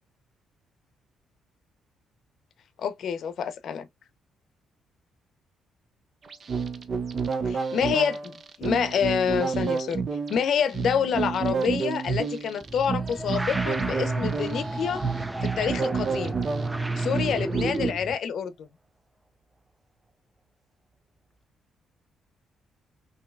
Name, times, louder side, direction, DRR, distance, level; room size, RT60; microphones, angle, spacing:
voice 1, 2.8-3.9 7.4-10.0 10.3-15.0 15.4-16.4 17.0-18.7, left 7 dB, 65° left, 0.7 m, -27 dB
sound 1, 6.3-17.9, right 5 dB, 45° right, 0.7 m, -30 dB
sound 2, 12.6-18.2, right 2 dB, 15° right, 0.4 m, -32 dB
5.3 x 2.9 x 2.3 m
cardioid pair, 90°, 0 cm